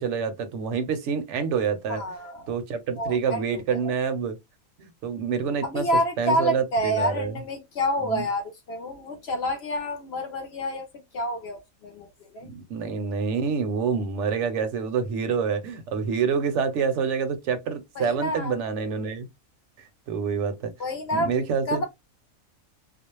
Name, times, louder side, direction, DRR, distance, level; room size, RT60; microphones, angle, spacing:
voice 1, 0.0-2.0 2.5-4.4 4.8-5.9 6.2-7.3 8.0-8.3 12.4-19.3 20.1-20.7 21.1-21.8, right 6 dB, 65° right, 0.8 m, -27 dB
voice 2, 1.9-2.5 3.0-3.8 5.6-10.9 11.1-12.5 18.0-18.5 20.8-21.3 21.7-21.8, equal, 60° left, 0.7 m, -28 dB
2.4 x 2.0 x 2.9 m
omnidirectional pair, 1.5 m